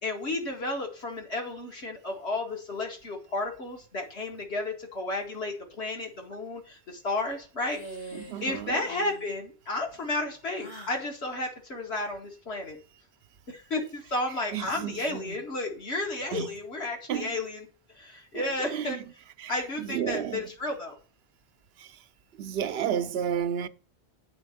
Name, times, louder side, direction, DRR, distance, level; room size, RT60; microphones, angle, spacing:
voice 1, 0.0-12.8 13.5-17.7 18.0-19.0 19.5-21.0, left 2 dB, 90° left, 2.3 m, -33 dB
sound 1, 7.6-8.5 8.8-9.3 10.5-11.1, right 2 dB, 75° left, 2.9 m, -43 dB
voice 2, 8.1-8.8 14.5-15.4 16.3-16.5 17.1-17.3 18.3-19.0 19.4-19.5 19.8-20.5 21.8-22.0 22.4-23.7, right 9 dB, 75° right, 0.8 m, -32 dB
8.5 x 4.2 x 6.8 m
omnidirectional pair, 1.1 m